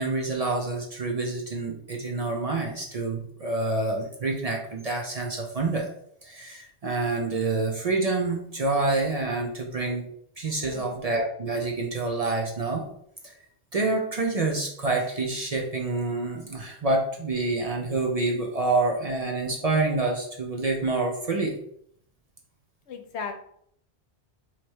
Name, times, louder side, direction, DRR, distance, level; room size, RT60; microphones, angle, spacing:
voice 1, 0.0-5.9 6.2-10.1 10.4-12.9 13.2-13.3 13.7-21.6, right 3 dB, 45° right, 0 dB, 0.6 m, -27 dB
voice 2, 10.6-11.0 22.9-23.3, left 5 dB, 80° left, 5 dB, 1.0 m, -36 dB
3.2 x 2.9 x 4.4 m, 0.67 s
omnidirectional pair, 1.1 m